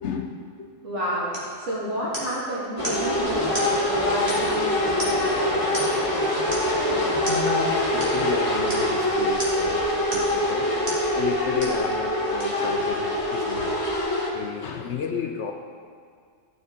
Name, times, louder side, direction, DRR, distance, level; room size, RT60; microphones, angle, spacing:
voice 1, 0.0-0.7 1.8-2.0 6.9-10.7 11.0-13.7 14.3-15.5, left 5 dB, 65° left, 4 dB, 0.9 m, -32 dB
voice 2, 0.8-1.3 1.6-5.6, equal, 65° right, -9 dB, 2.9 m, -30 dB
sound 1, 1.3-1.5 2.1-2.4 2.8-3.1 3.5-3.7 4.3-4.6 5.0-5.3 5.7-6.1 6.5-6.7 7.2-7.4 8.0-8.2 8.7-8.9 9.4-9.7 10.1-10.4 10.9-11.1 11.6-11.8 12.4-12.5, equal, 30° right, 2.5 m, -33 dB
sound 2, 2.8-14.3, left 1 dB, 25° left, 1.7 m, -24 dB
15.5 x 6.7 x 3.8 m, 2.1 s
omnidirectional pair, 1.3 m